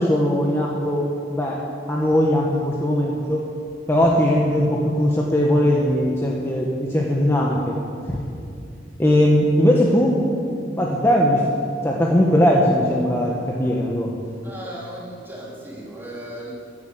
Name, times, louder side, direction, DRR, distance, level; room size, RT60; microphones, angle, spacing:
voice 1, 0.0-3.4 3.9-7.8 9.0-10.2 10.8-11.4 11.8-14.2, equal, 15° left, -3 dB, 1.2 m, -19 dB
voice 2, 14.2-16.5, right 1 dB, 10° right, -6 dB, 3.7 m, -36 dB
15.5 x 8.2 x 8.1 m, 2.5 s
head